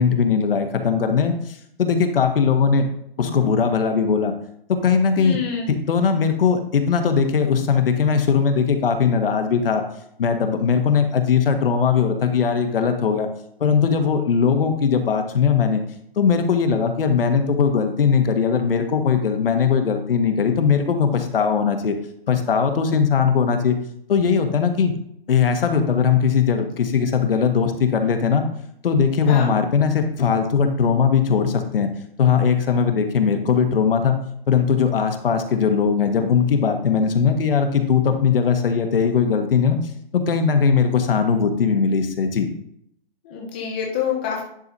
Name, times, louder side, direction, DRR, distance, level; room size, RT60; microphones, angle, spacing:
voice 1, 0.0-2.9 3.2-4.3 4.8-5.4 5.7-9.8 10.2-13.3 13.6-15.8 16.2-21.9 22.3-23.8 24.1-24.9 25.3-28.4 28.8-31.9 32.2-34.2 34.5-39.8 40.1-42.5, left 6 dB, 70° left, 6 dB, 1.4 m, -19 dB
voice 2, 5.2-5.7 29.3-29.5 43.2-44.4, left 7 dB, 10° left, -2 dB, 0.5 m, -26 dB
10.5 x 4.0 x 4.1 m, 0.72 s
hypercardioid pair, 170°, 29 cm